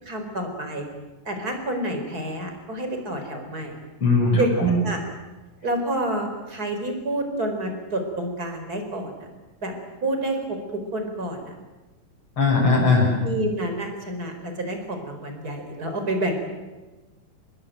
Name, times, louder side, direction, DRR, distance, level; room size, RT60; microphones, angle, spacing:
voice 1, 0.0-0.9 1.2-3.7 4.3-4.5 4.8-5.0 5.6-9.3 9.6-9.7 10.0-11.5 13.2-16.3, right 1 dB, 20° right, 5 dB, 4.6 m, -29 dB
voice 2, 4.0-4.8 12.4-13.2, left 3 dB, 30° left, -4 dB, 7.5 m, -19 dB
27.0 x 21.0 x 9.3 m, 1.2 s
omnidirectional pair, 4.7 m